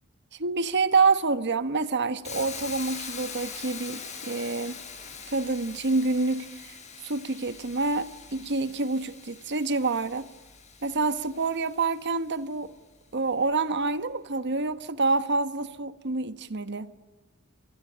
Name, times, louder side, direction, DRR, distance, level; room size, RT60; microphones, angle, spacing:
voice 1, 0.4-4.8 5.3-6.8 7.0-10.3 10.8-12.7 13.1-16.9, right 3 dB, 55° right, 1.2 m, -27 dB
Hiss, 2.2-12.1, left 6 dB, 35° left, 6.3 m, -42 dB
26.0 x 20.0 x 10.0 m
head